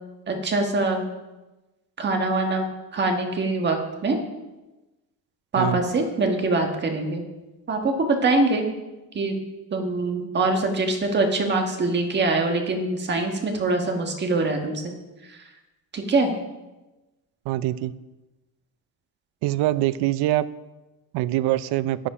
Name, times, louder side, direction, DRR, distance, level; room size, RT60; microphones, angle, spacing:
voice 1, 0.3-1.0 2.0-2.7 2.9-4.2 5.5-7.2 7.7-8.7 9.1-9.4 9.7-14.8 15.9-16.3, right 2 dB, 25° right, 3 dB, 1.4 m, -23 dB
voice 2, 17.5-17.9 19.4-20.5 21.1-22.0, right 15 dB, 85° right, 17 dB, 0.6 m, -23 dB
11.0 x 8.3 x 5.0 m, 1.1 s
cardioid pair, 180°, 38 cm